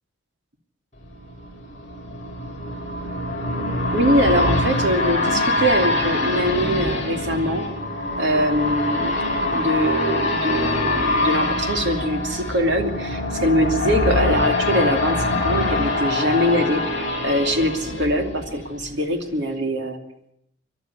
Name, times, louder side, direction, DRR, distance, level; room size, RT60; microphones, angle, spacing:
sound 1, 1.1-18.9 19.3-19.4, left 2 dB, 35° left, 5.9 m, -24 dB
voice 1, 3.9-7.7 8.2-9.2 9.5-20.0, equal, 55° right, 4 dB, 2.8 m, -22 dB
27.0 x 11.5 x 9.5 m, 0.76 s
head